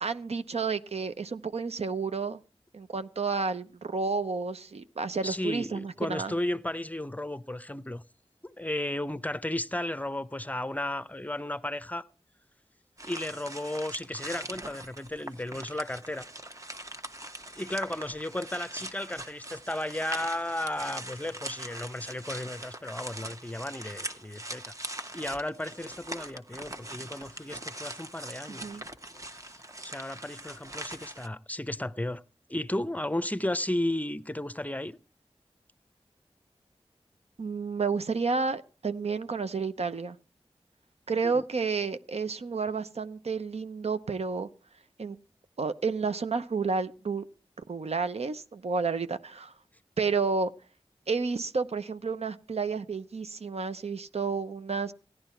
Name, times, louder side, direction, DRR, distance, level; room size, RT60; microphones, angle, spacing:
voice 1, 0.0-2.4 2.7-6.3 28.6-28.8 37.4-40.2 41.1-44.5 45.0-45.2 45.6-47.2 47.7-49.5 50.0-50.5 51.1-54.9, right 4 dB, 80° right, 0.8 m, -31 dB
voice 2, 5.2-8.0 8.4-12.1 13.1-16.2 17.6-24.7 25.1-28.7 29.5-32.2 32.5-35.0 41.2-41.4, left 1 dB, 15° left, 0.7 m, -34 dB
sound 1, 13.0-31.3, right 1 dB, 30° right, 1.2 m, -42 dB
15.5 x 11.0 x 4.4 m
wide cardioid pair, 65°, 11 cm